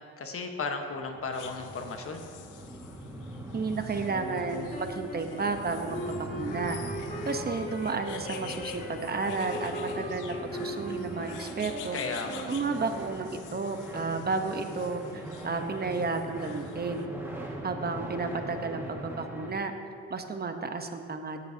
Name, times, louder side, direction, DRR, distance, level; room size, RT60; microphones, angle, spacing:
voice 1, 0.2-2.2 11.9-12.5, left 4 dB, 45° left, 4 dB, 1.3 m, -34 dB
sound 1, 0.9-19.5, right 1 dB, 10° right, 1.9 m, -42 dB
sound 2, 1.3-17.1, left 9 dB, 85° left, 0.7 m, -48 dB
voice 2, 3.5-6.8 7.2-12.0 12.5-17.1 17.6-19.7 20.1-21.4, right 4 dB, 30° right, 6 dB, 1.0 m, -32 dB
sound 3, 4.1-13.3, equal, 30° left, 2.1 m, -40 dB
17.0 x 9.5 x 2.9 m, 2.4 s
cardioid pair, 90°, 30 cm